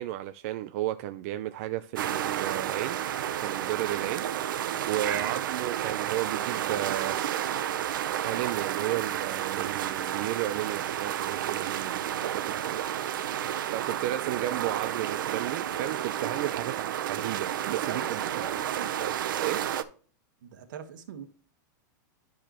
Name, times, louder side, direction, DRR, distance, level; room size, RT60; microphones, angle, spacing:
voice 1, 0.0-3.0 3.4-7.2 8.2-12.8 13.1-18.2 18.5-18.9 19.4-19.6, right 14 dB, 45° right, 0.4 m, -34 dB
sound 1, 2.0-19.8, right 10 dB, 90° right, 0.7 m, -31 dB
voice 2, 17.9-19.1 20.4-21.3, right 7 dB, 70° right, 1.5 m, -42 dB
11.5 x 4.7 x 3.0 m
supercardioid pair, 165°, 11 cm